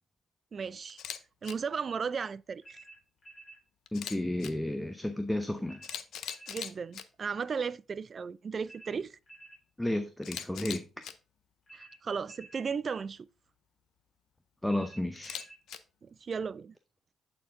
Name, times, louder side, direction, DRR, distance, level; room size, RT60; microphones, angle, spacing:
voice 1, 0.5-1.0 1.4-2.8 6.5-9.2 11.7-13.3 16.0-16.7, right 6 dB, 45° right, 0.3 m, -35 dB
Camera, 0.9-1.2 1.4-1.5 3.9-4.5 5.4-5.5 5.8-7.0 10.2-11.1 15.2-15.8, left 9 dB, 70° left, 0.6 m, -40 dB
sound 1, 2.6-3.6 5.7-6.6 8.7-9.6 11.7-12.6 14.7-15.6, right 2 dB, 35° left, 4.3 m, -52 dB
voice 2, 3.9-5.8 9.8-10.8 14.6-15.4, left 1 dB, 5° left, 0.6 m, -32 dB
8.1 x 4.4 x 3.7 m
cardioid pair, 90°, 0 cm